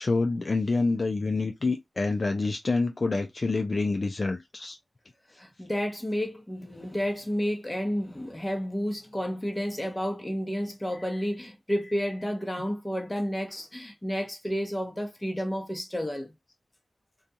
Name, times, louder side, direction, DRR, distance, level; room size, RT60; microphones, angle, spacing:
voice 1, 0.0-4.8, left 3 dB, 50° left, 0.4 m, -27 dB
voice 2, 5.4-16.3, equal, 15° left, 0.9 m, -31 dB
2.4 x 2.3 x 2.7 m
cardioid pair, 50°, 0 cm